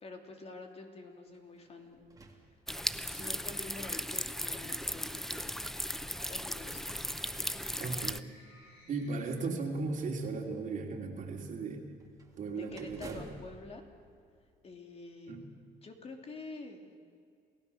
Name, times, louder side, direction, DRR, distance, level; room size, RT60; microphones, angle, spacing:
voice 1, 0.0-2.1 3.1-5.7 6.3-7.0 9.1-9.2 9.6-9.7 12.6-13.8 14.6-16.9, left 3 dB, 35° left, 3 dB, 3.0 m, -48 dB
sound 1, 1.3-3.3 4.1-4.2 6.0-8.6 12.0-15.0, right 2 dB, 20° right, 2.6 m, -56 dB
sound 2, 2.7-8.2, equal, ahead, 0.7 m, -37 dB
sound 3, 7.0-10.2, left 2 dB, 85° left, 7.5 m, -61 dB
voice 2, 7.8-8.2 8.9-11.9 12.4-13.3 15.3-15.4, right 4 dB, 50° right, 2 dB, 3.1 m, -36 dB
28.0 x 16.5 x 6.9 m, 2.2 s
cardioid pair, 110°, 17 cm